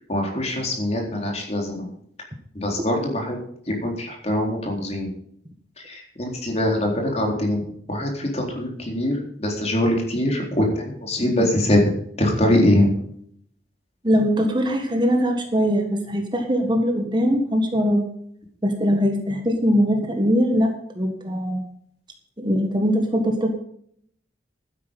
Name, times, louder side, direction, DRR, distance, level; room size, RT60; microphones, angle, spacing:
voice 1, 0.1-1.9 2.5-3.4 3.7-5.1 5.8-7.6 7.9-11.8 12.2-12.9, left 1 dB, 35° left, 1 dB, 3.9 m, -23 dB
voice 2, 14.0-18.0 18.6-20.7 20.9-21.6 22.4-23.5, equal, 25° right, 4 dB, 1.6 m, -21 dB
12.0 x 10.5 x 5.4 m, 0.65 s
head